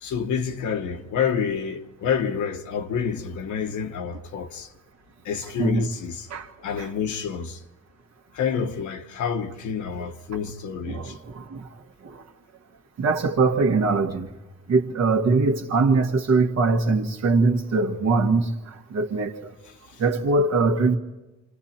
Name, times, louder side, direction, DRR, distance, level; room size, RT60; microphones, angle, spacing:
voice 1, 0.0-4.7 5.2-6.3 6.6-7.6 8.3-11.1, left 7 dB, 75° left, 1.4 m, -28 dB
voice 2, 5.6-5.9 6.3-6.5 6.8-6.9 10.9-11.7 12.0-12.2 13.0-14.3 14.7-19.5 20.0-21.0, right 3 dB, 60° right, 1.8 m, -22 dB
28.0 x 26.5 x 4.4 m
cardioid pair, 90°, 30 cm